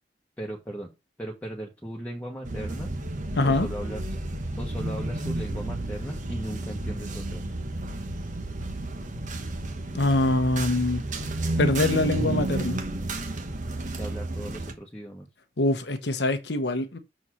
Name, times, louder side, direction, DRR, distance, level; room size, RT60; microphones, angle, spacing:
voice 1, 0.4-0.9 1.2-2.9 3.4-4.0 4.6-7.4 14.0-15.3, right 1 dB, 10° left, 1.4 m, -37 dB
sound 1, 2.4-14.7, right 2 dB, 45° right, 1.1 m, -32 dB
voice 2, 3.4-3.7 9.9-11.0 11.6-12.8 15.6-17.0, left 2 dB, 75° left, 1.0 m, -24 dB
6.4 x 4.1 x 6.2 m
head